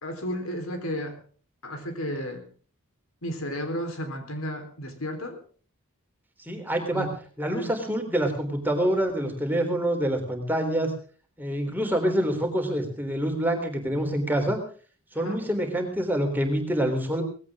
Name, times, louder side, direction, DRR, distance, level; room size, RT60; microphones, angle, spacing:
voice 1, 0.0-1.2 1.6-2.5 3.2-5.4 6.9-7.1 7.5-7.8 15.2-15.4, equal, 75° left, 6 dB, 4.0 m, -33 dB
voice 2, 6.4-7.1 7.4-10.9 11.4-14.6 15.1-17.2, right 1 dB, 10° right, 3 dB, 3.6 m, -26 dB
19.0 x 17.0 x 3.7 m, 0.41 s
head